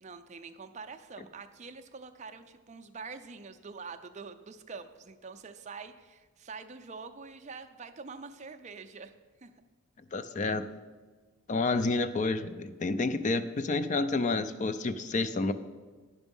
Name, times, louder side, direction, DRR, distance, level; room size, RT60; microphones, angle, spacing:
voice 1, 0.0-9.1 9.4-9.5, right 4 dB, 30° right, 7 dB, 0.5 m, -45 dB
voice 2, 10.1-10.7 11.5-15.5, left 3 dB, 35° left, 12 dB, 0.4 m, -29 dB
9.6 x 6.2 x 5.3 m, 1.4 s
head